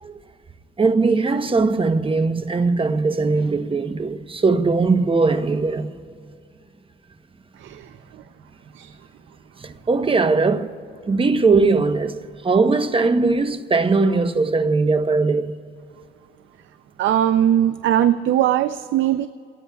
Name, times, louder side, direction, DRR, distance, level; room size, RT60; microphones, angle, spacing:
voice 1, 0.8-5.9 9.6-10.7 11.1-15.5, right 3 dB, 25° right, 0.8 m, -20 dB
voice 2, 17.0-19.3, right 11 dB, 75° right, 0.5 m, -19 dB
29.0 x 18.0 x 2.3 m
cardioid pair, 90°, 20 cm